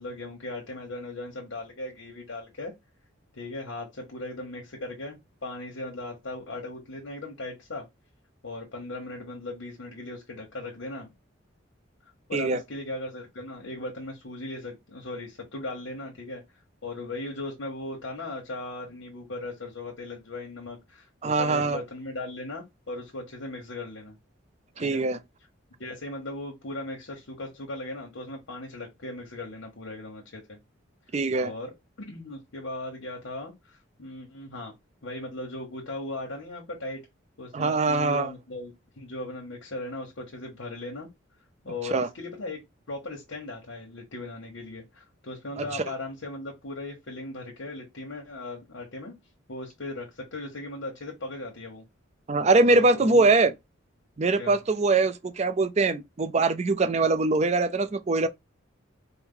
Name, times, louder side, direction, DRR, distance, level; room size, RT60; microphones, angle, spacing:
voice 1, 0.0-2.7 3.4-7.9 8.4-11.1 12.3-16.4 16.8-24.2 24.8-25.0 25.8-30.6 31.4-34.7 35.0-37.1 37.4-41.1 41.6-42.6 42.9-49.1 49.5-51.8 52.7-53.3 54.4-54.6, left 2 dB, 80° left, 1.2 m, -38 dB
voice 2, 21.2-21.8 24.8-25.2 31.1-31.5 37.5-38.3 41.8-42.1 45.6-45.8 52.3-53.5 54.2-58.3, right 3 dB, 35° right, 0.4 m, -23 dB
4.5 x 2.1 x 3.7 m
head